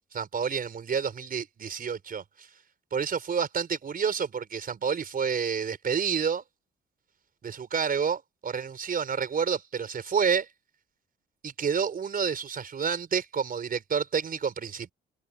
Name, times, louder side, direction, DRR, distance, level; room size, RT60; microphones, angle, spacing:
voice 1, 0.1-2.5 2.9-6.4 7.4-10.5 11.4-14.9, right 6 dB, 45° right, 4.5 m, -29 dB
cardioid pair, 90°, 20 cm